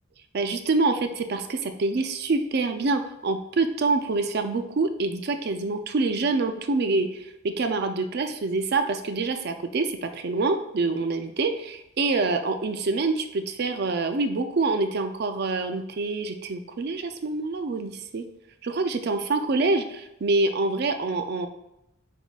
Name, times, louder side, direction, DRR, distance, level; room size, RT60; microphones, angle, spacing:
voice 1, 0.3-18.2 18.6-21.5, right 3 dB, 55° right, 7 dB, 0.4 m, -26 dB
6.0 x 3.7 x 2.4 m, 0.85 s
head